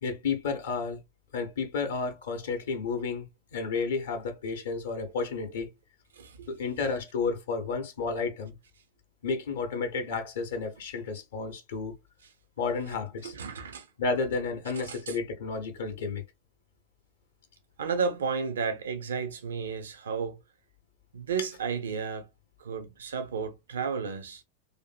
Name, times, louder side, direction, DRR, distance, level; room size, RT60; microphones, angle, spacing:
voice 1, 0.0-1.0 1.3-5.7 6.5-8.6 9.2-11.9 12.6-13.3 14.0-16.2, left 4 dB, 60° left, 0.6 m, -31 dB
voice 2, 6.1-6.5 13.2-13.9 14.7-15.2 17.8-20.4 21.1-22.3 22.6-24.4, right 5 dB, 65° right, 0.4 m, -33 dB
2.5 x 2.5 x 2.3 m
figure-of-eight pair, 90°, 0 cm